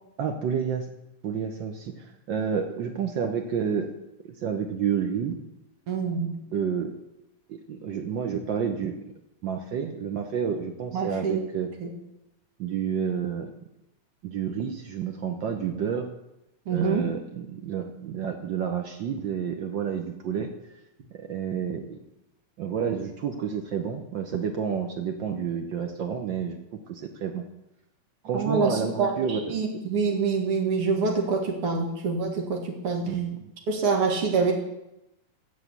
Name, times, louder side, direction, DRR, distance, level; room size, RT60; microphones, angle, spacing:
voice 1, 0.2-0.9 1.2-3.9 4.2-5.4 6.5-7.0 7.5-9.0 9.4-11.7 12.6-13.5 14.2-16.1 16.7-20.8 21.1-22.0 22.6-26.6 26.9-27.4 28.2-29.5 33.1-33.4, right 7 dB, 85° right, 4 dB, 1.0 m, -30 dB
voice 2, 5.9-6.3 10.9-11.4 11.8-11.9 16.7-17.1 28.3-33.1 33.7-34.5, right 4 dB, 55° right, 2 dB, 2.5 m, -26 dB
14.5 x 5.1 x 8.1 m, 0.89 s
omnidirectional pair, 3.4 m